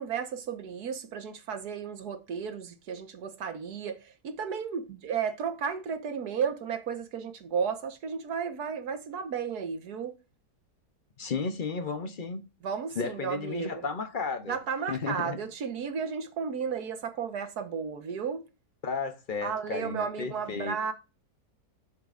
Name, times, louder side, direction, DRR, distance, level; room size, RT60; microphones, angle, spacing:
voice 1, 0.0-10.1 12.6-13.8 14.5-18.4 19.4-20.9, right 6 dB, 65° right, 1.7 m, -33 dB
voice 2, 11.2-12.4 13.0-14.6 14.9-15.4 18.8-20.9, left 4 dB, 50° left, 0.6 m, -33 dB
11.5 x 6.7 x 2.5 m
omnidirectional pair, 1.9 m